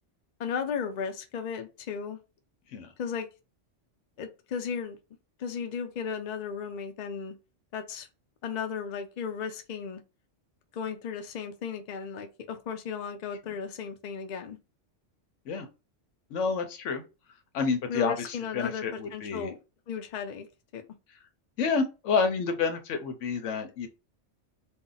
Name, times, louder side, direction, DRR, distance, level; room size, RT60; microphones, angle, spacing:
voice 1, 0.4-2.2 3.0-3.3 4.2-5.0 5.4-7.4 7.7-8.1 8.4-10.0 10.7-14.6 17.9-19.6 19.9-20.5 20.7-20.9, left 6 dB, 55° left, 0.5 m, -35 dB
voice 2, 16.3-17.0 17.5-19.5 21.6-23.9, left 5 dB, 80° left, 1.0 m, -29 dB
2.7 x 2.1 x 3.8 m
omnidirectional pair, 1.2 m